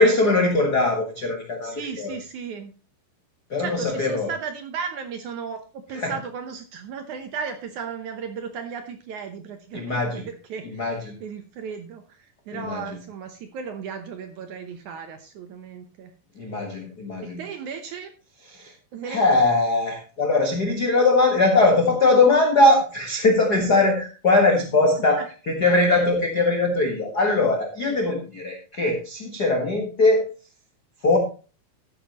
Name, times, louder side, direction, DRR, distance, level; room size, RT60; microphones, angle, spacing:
voice 1, 0.0-2.1 3.5-4.3 5.9-6.1 9.7-10.2 10.6-11.2 12.5-12.8 16.3-17.4 18.5-18.7 19.1-30.3 31.0-31.2, left 2 dB, 85° left, 2 dB, 0.8 m, -21 dB
voice 2, 1.6-2.7 3.6-16.1 17.2-18.1 18.9-19.2, right 6 dB, 70° right, 7 dB, 1.9 m, -35 dB
13.5 x 9.9 x 3.0 m, 0.34 s
omnidirectional pair, 4.5 m